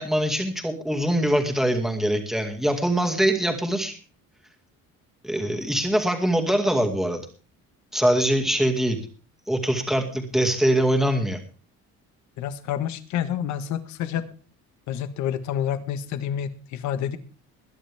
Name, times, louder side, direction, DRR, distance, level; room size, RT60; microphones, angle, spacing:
voice 1, 0.0-4.0 5.2-7.2 7.9-9.0 9.5-11.4, right 1 dB, ahead, 3 dB, 2.2 m, -23 dB
voice 2, 12.4-14.3 14.9-17.2, left 9 dB, 75° left, 11 dB, 1.5 m, -28 dB
21.0 x 10.5 x 3.5 m, 0.37 s
cardioid pair, 165°, 29 cm